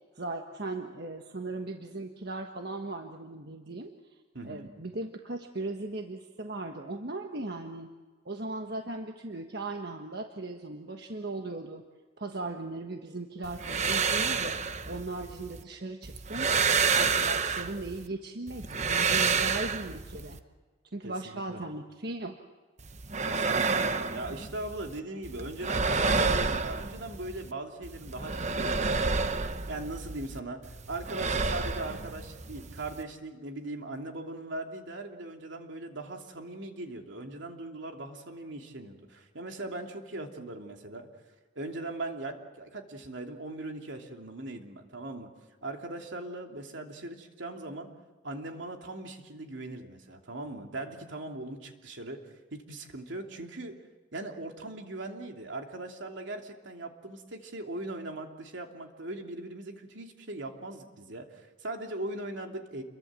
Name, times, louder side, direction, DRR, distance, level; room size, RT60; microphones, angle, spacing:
voice 1, 0.1-3.9 4.4-7.9 8.2-11.8 12.2-14.6 14.9-16.5 16.9-20.4 20.9-22.4, right 2 dB, 55° right, 4 dB, 1.4 m, -38 dB
voice 2, 4.3-4.7 17.0-17.2 21.0-21.6 23.3-41.1 41.5-45.3 45.6-47.9 48.2-52.2 52.5-53.8 54.1-62.8, right 2 dB, 75° right, 3 dB, 2.9 m, -40 dB
sound 1, 13.4-15.6 16.0-18.1 18.5-20.4 22.8-25.0 25.2-27.5 27.8-30.4 30.6-33.0, right 4 dB, 35° right, 1.0 m, -29 dB
28.0 x 23.0 x 7.6 m, 1.3 s
head